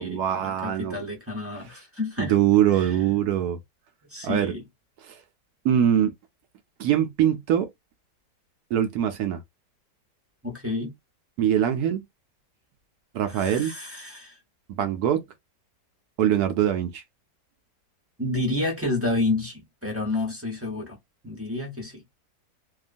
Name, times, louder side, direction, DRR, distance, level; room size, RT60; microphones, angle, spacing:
voice 1, 0.0-1.0 2.2-3.6 4.2-4.5 5.1-5.2 5.6-6.1 6.8-7.7 8.7-9.4 11.4-12.0 13.1-13.7 14.8-15.2 16.2-17.0, right 10 dB, 70° right, 1.0 m, -23 dB
voice 2, 0.6-2.4 2.7-3.0 4.1-4.6 10.4-10.9 13.3-14.4 18.2-21.0 21.2-22.0, left 2 dB, 15° right, 0.6 m, -29 dB
2.9 x 2.3 x 2.5 m
omnidirectional pair, 1.8 m